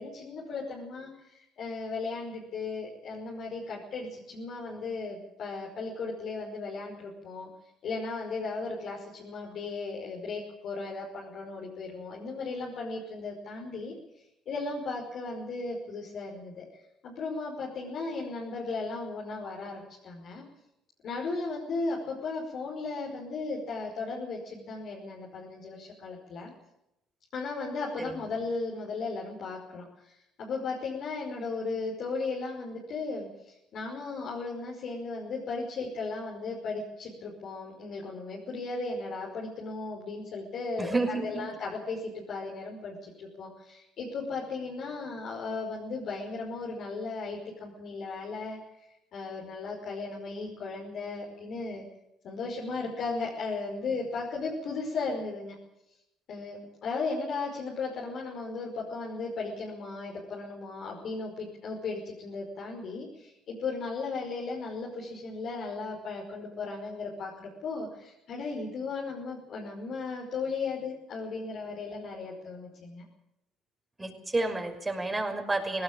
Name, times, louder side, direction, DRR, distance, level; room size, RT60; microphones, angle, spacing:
voice 1, 0.0-7.5 7.8-13.9 14.5-20.4 21.0-26.5 27.3-40.9 41.2-48.6 49.1-51.8 52.2-55.6 56.3-73.0, left 3 dB, 60° left, -2 dB, 5.4 m, -36 dB
voice 2, 40.8-41.5 74.0-75.8, right 2 dB, 20° right, 5 dB, 6.1 m, -30 dB
19.0 x 18.0 x 8.9 m, 0.85 s
hypercardioid pair, 60°, 0 cm